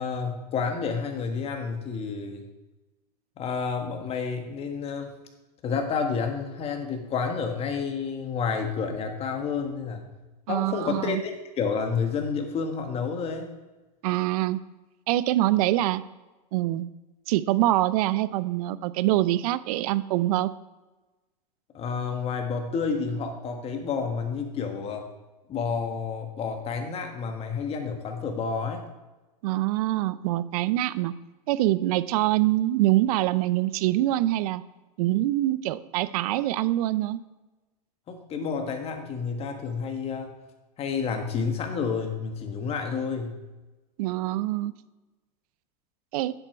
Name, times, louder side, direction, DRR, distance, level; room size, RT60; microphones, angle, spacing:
voice 1, 0.0-2.5 3.4-5.1 5.6-10.1 10.5-13.5 21.7-25.0 25.5-28.8 38.1-40.3 40.8-43.4, left 5 dB, 30° left, 4 dB, 1.5 m, -30 dB
voice 2, 10.5-11.2 14.0-14.6 15.1-16.0 16.5-16.9 17.3-20.5 29.4-31.1 31.5-34.6 35.0-37.2 44.0-44.7 46.1-46.3, right 15 dB, 60° right, 16 dB, 0.5 m, -24 dB
10.0 x 8.0 x 4.5 m, 1.1 s
supercardioid pair, 135°, 21 cm